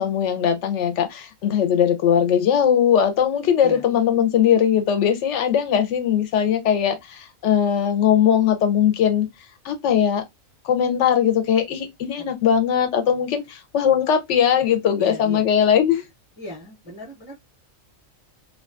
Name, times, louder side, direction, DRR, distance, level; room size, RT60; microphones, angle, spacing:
voice 1, 0.0-9.3 9.6-10.2 10.6-16.0, left 8 dB, 65° left, 0.8 m, -20 dB
voice 2, 12.2-12.6 15.0-15.5 16.4-17.3, equal, 25° left, 0.8 m, -37 dB
2.5 x 2.3 x 2.3 m
omnidirectional pair, 1.4 m